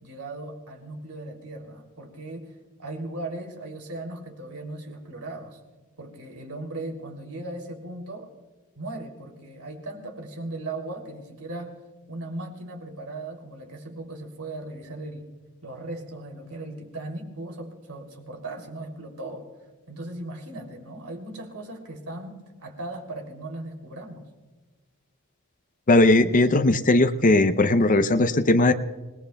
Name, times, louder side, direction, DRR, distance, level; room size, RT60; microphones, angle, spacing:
voice 1, 0.0-2.5 2.8-5.6 6.0-8.3 8.7-11.8 12.1-15.3 15.6-19.5 19.9-24.3, right 2 dB, 85° right, 3 dB, 3.0 m, -37 dB
voice 2, 25.9-28.7, left 2 dB, 35° left, 9 dB, 0.6 m, -18 dB
27.5 x 18.5 x 2.3 m, 1.3 s
head